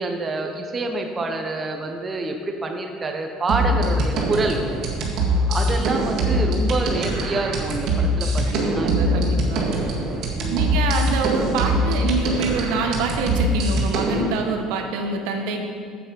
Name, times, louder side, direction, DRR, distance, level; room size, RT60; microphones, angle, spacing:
voice 1, 0.0-4.6 5.5-9.2 10.4-10.7, right 3 dB, 20° right, 3 dB, 0.7 m, -27 dB
sound 1, 3.5-14.3, right 1 dB, 55° right, 1.9 m, -22 dB
voice 2, 8.5-9.7 10.5-15.7, right 4 dB, 85° right, 4 dB, 1.2 m, -26 dB
8.1 x 8.1 x 5.3 m, 2.1 s
cardioid pair, 150°, 0 cm